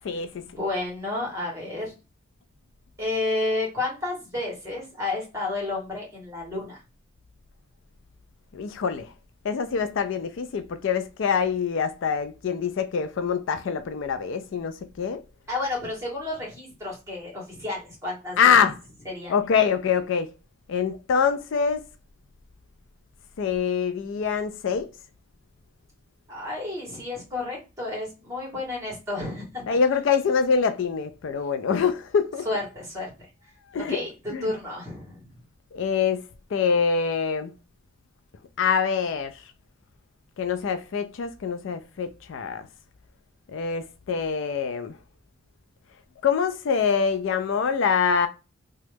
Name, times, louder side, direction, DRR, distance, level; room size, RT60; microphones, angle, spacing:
voice 1, 0.5-1.9 3.0-6.8 15.5-18.4 19.0-19.3 26.3-29.8 32.4-33.1 33.9-34.1 34.4-35.3, left 2 dB, 15° right, 1.5 m, -31 dB
voice 2, 8.5-9.1 9.4-15.2 18.4-18.8 19.3-20.3 20.7-21.8 23.4-24.9 29.7-32.5 33.7-34.0 34.3-34.5 35.7-36.2 36.5-37.5 38.6-39.4 40.4-42.7 43.5-44.9 46.2-48.3, left 6 dB, 65° left, 0.3 m, -24 dB
3.0 x 2.3 x 3.2 m
head